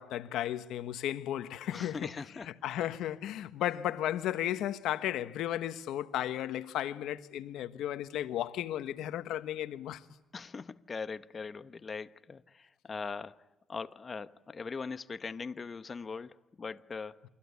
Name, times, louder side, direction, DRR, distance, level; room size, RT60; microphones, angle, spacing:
voice 1, 0.0-2.1 2.6-10.0, left 12 dB, 85° left, 1.2 m, -34 dB
voice 2, 1.7-2.5 10.3-13.4 13.7-17.2, left 5 dB, 35° left, 1.0 m, -41 dB
29.0 x 24.5 x 8.3 m
cardioid pair, 90°, 0 cm